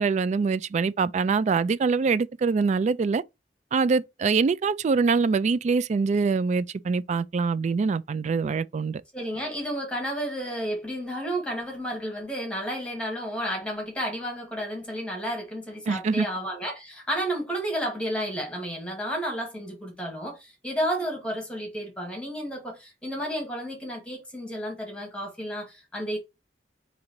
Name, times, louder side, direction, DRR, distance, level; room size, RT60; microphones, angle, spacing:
voice 1, 0.0-3.2 3.7-9.0 15.9-16.3, right 4 dB, 40° right, 0.3 m, -24 dB
voice 2, 9.1-26.2, equal, 5° left, 2.0 m, -32 dB
3.8 x 3.1 x 4.5 m
head